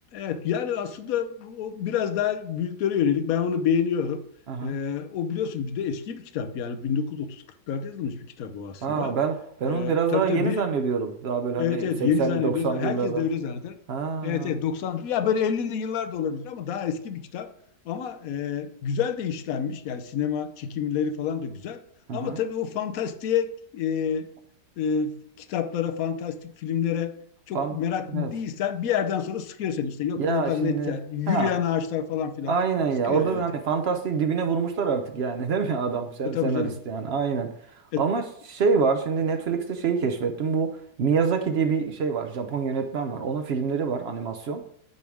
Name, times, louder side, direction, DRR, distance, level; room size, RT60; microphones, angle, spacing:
voice 1, 0.1-4.2 4.6-9.1 9.6-10.6 11.6-13.7 14.2-17.5 17.8-21.8 22.1-23.5 23.7-24.3 24.8-27.1 27.5-32.6 33.1-33.4 36.2-36.8 37.9-38.0, left 7 dB, 60° left, 10 dB, 1.0 m, -28 dB
voice 2, 8.8-13.2 13.9-14.5 22.1-22.4 27.5-27.8 28.1-28.3 30.2-31.0 31.3-31.5 32.5-44.6, right 5 dB, 90° right, 5 dB, 0.5 m, -26 dB
9.4 x 3.5 x 6.1 m, 0.70 s
omnidirectional pair, 2.0 m